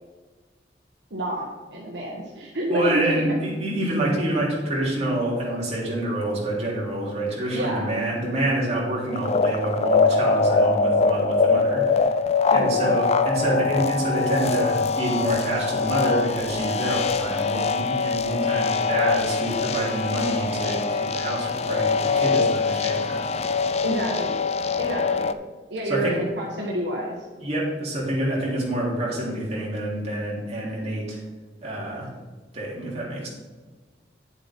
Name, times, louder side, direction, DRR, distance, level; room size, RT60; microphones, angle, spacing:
voice 1, 1.1-3.6 7.5-7.9 12.5-12.9 13.3-13.5 23.8-24.4 24.8-25.3 25.7-27.2, right 1 dB, 65° right, -3 dB, 1.6 m, -29 dB
voice 2, 2.7-12.0 12.5-23.2 25.9-26.2 27.4-31.2 31.6-32.1 32.5-33.3, right 1 dB, 35° right, -5 dB, 3.3 m, -27 dB
sound 1, 9.1-25.3, left 4 dB, 35° left, 0.4 m, -23 dB
10.0 x 8.1 x 3.8 m, 1.3 s
head